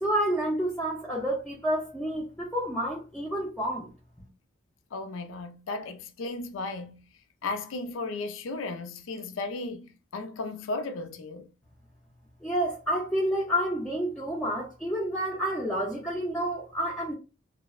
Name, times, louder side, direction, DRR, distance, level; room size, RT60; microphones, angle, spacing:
voice 1, 0.0-3.9 12.4-17.1, equal, 5° left, 0.4 m, -29 dB
voice 2, 4.9-7.0 7.4-11.5, left 3 dB, 85° left, 0.4 m, -35 dB
2.6 x 2.0 x 2.4 m
head